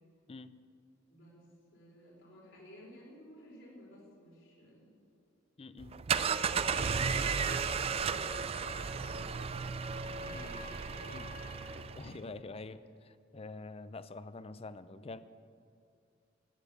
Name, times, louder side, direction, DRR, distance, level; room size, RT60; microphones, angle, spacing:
voice 1, 1.1-1.5 1.7-4.9 7.8-9.8 10.1-12.3 15.0-15.2, equal, 75° left, -4 dB, 4.5 m, -56 dB
voice 2, 5.6-6.0 10.3-10.7 11.1-11.3 12.0-15.2, left 3 dB, 30° left, 14 dB, 0.5 m, -46 dB
sound 1, 5.8-12.2, right 6 dB, 30° right, 0.3 m, -34 dB
Trumpet, 6.3-11.8, left 1 dB, 50° right, 1.9 m, -46 dB
16.5 x 7.2 x 8.2 m, 2.3 s
head